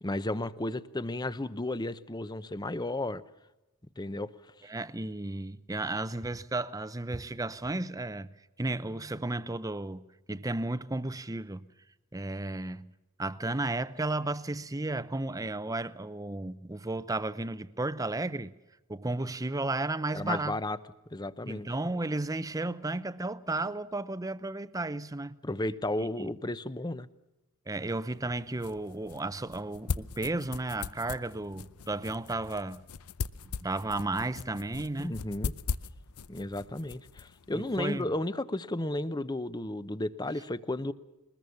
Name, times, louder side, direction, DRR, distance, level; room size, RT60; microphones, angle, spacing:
voice 1, 0.0-3.2 4.0-4.3 20.1-20.8 21.1-21.7 25.4-27.1 35.0-35.5 36.3-40.9, left 1 dB, 20° left, 0.7 m, -33 dB
voice 2, 4.6-8.3 8.6-11.6 12.1-12.9 13.2-18.5 18.9-20.6 21.5-25.4 26.0-26.3 27.7-32.8 33.6-35.1 37.5-38.1, right 2 dB, 15° right, 0.7 m, -33 dB
sound 1, 28.1-38.0, left 5 dB, 80° left, 0.7 m, -40 dB
22.0 x 20.5 x 7.0 m
head